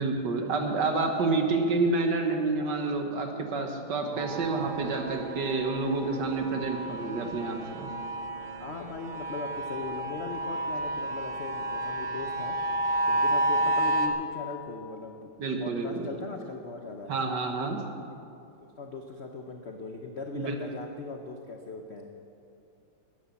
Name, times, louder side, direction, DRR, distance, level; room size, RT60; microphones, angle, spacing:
voice 1, 0.0-7.9 15.4-16.1 17.1-17.8 20.3-20.5, right 3 dB, 60° right, 4 dB, 1.7 m, -29 dB
voice 2, 4.0-4.6 8.6-12.6 13.1-15.3 15.6-17.1 18.8-22.1, left 3 dB, 60° left, 3 dB, 0.7 m, -39 dB
sound 1, 4.2-14.1, right 2 dB, 80° right, 1.9 m, -31 dB
12.5 x 10.5 x 7.1 m, 2.6 s
omnidirectional pair, 2.2 m